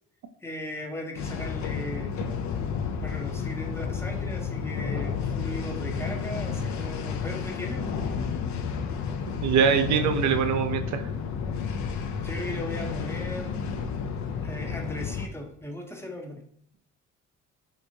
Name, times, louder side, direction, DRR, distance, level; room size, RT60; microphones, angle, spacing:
voice 1, 0.4-2.1 3.0-8.0 12.2-13.6 14.4-16.4, equal, 10° left, 1 dB, 0.6 m, -37 dB
sound 1, 1.1-15.3, left 6 dB, 70° left, 0.5 m, -31 dB
voice 2, 9.4-11.0, right 7 dB, 70° right, 8 dB, 0.4 m, -23 dB
3.3 x 2.9 x 2.7 m, 0.66 s
cardioid pair, 90°, 30 cm